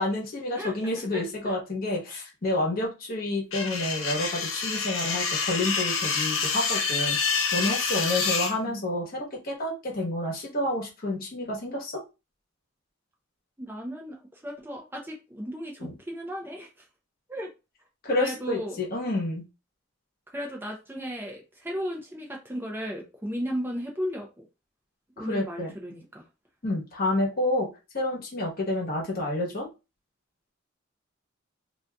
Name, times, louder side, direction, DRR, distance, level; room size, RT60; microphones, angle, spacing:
voice 1, 0.0-7.2 7.5-12.0 15.8-15.9 18.0-19.4 25.2-25.7 26.6-27.7 27.9-29.7, left 1 dB, 50° left, -2 dB, 1.1 m, -29 dB
sound 1, 3.5-8.5, left 5 dB, 75° left, 0.7 m, -27 dB
voice 2, 13.6-16.8 17.3-17.5 18.2-18.8 20.3-24.4 25.2-26.2, equal, 10° right, -1 dB, 0.5 m, -35 dB
2.6 x 2.4 x 3.4 m, 0.28 s
head